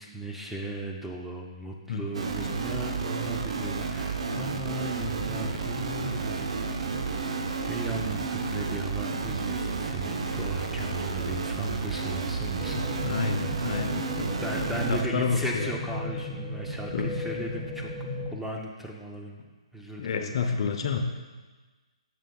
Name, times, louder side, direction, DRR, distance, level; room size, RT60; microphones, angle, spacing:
voice 1, 0.0-12.9 14.4-17.9 18.3-19.4 19.7-20.4 20.8-20.9, right 2 dB, ahead, -1 dB, 0.6 m, -37 dB
sound 1, 2.1-15.0, right 4 dB, 65° right, 0.7 m, -31 dB
sound 2, 12.6-18.3, left 1 dB, 25° right, 1.6 m, -36 dB
voice 2, 12.8-15.7 16.9-17.1 20.0-21.0, left 5 dB, 55° left, 5 dB, 0.7 m, -30 dB
9.0 x 6.7 x 2.3 m, 1.3 s
hypercardioid pair, 145°, 3 cm